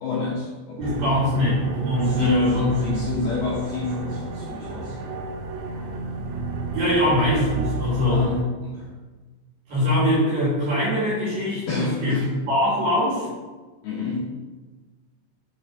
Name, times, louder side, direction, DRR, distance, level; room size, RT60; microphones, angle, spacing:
voice 1, 0.0-1.0 2.0-5.0 8.1-8.9 11.7-12.2 13.8-14.3, left 3 dB, 75° left, -6 dB, 2.3 m, -28 dB
voice 2, 0.8-2.7 6.7-8.2 9.7-12.2 12.4-13.3, left 1 dB, 55° right, -7 dB, 3.0 m, -22 dB
sound 1, 0.8-8.4, right 3 dB, 80° right, 3.0 m, -30 dB
7.1 x 3.9 x 4.6 m, 1.3 s
omnidirectional pair, 5.8 m